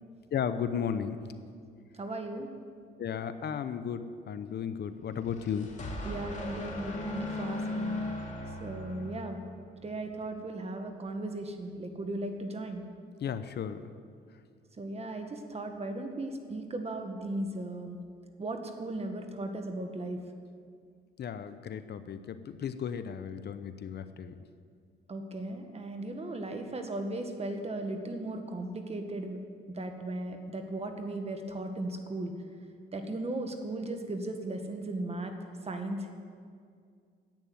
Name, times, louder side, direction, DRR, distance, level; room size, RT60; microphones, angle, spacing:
voice 1, 0.3-1.2 3.0-5.7 13.2-13.9 21.2-24.3, left 7 dB, 55° left, 11 dB, 0.7 m, -34 dB
voice 2, 2.0-2.5 6.0-7.9 8.6-9.4 9.8-12.8 14.8-18.0 18.4-20.2 25.1-29.4 29.8-32.3 32.9-35.3 35.6-36.1, right 2 dB, 30° right, 5 dB, 1.7 m, -36 dB
sound 1, 5.1-9.7, left 2 dB, 35° left, 2.5 m, -38 dB
10.5 x 8.9 x 9.4 m, 2.2 s
cardioid pair, 90°, 20 cm